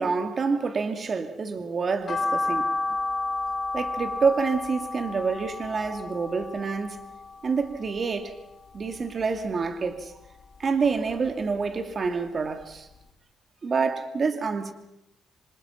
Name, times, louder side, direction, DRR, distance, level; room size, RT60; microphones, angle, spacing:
voice 1, 0.0-2.7 3.7-7.0 7.4-8.4 8.7-10.1 10.6-12.9 13.6-14.7, right 5 dB, 40° right, 2.7 m, -27 dB
sound 1, 2.1-8.4 8.7-9.9 10.2-11.7 12.0-12.1 12.6-12.7 12.9-13.0, left 2 dB, 40° left, 5.4 m, -32 dB
27.5 x 26.0 x 5.9 m
cardioid pair, 90°, 0 cm